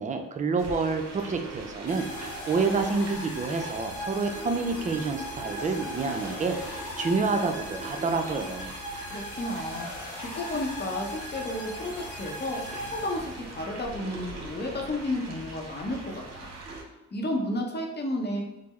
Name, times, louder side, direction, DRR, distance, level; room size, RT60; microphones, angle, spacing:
voice 1, 0.0-8.7, right 4 dB, 25° right, 6 dB, 0.4 m, -28 dB
sound 1, 0.6-16.8, right 2 dB, 60° right, 0.8 m, -42 dB
sound 2, 1.9-13.7, left 1 dB, 75° left, 0.7 m, -39 dB
voice 2, 9.1-9.9 10.2-16.5 17.1-18.4, left 1 dB, 35° left, 1 dB, 0.7 m, -32 dB
3.4 x 2.0 x 3.0 m, 1.1 s
supercardioid pair, 55°, 31 cm